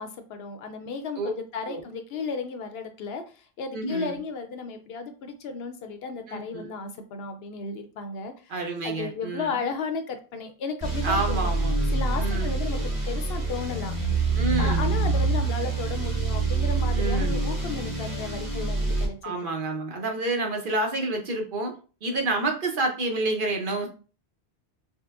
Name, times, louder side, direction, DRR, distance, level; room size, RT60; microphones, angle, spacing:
voice 1, 0.0-8.5 8.8-11.5 11.9-14.0 14.6-19.2, left 5 dB, 70° left, 7 dB, 0.8 m, -34 dB
voice 2, 3.7-4.1 6.3-6.7 8.5-9.6 11.0-11.7 12.2-12.6 14.3-14.8 16.9-17.4 19.2-21.7 22.0-23.9, right 2 dB, 55° right, 2 dB, 0.8 m, -28 dB
sound 1, 10.8-19.1, right 3 dB, 30° right, 1.2 m, -26 dB
5.4 x 2.1 x 2.4 m, 0.36 s
omnidirectional pair, 1.1 m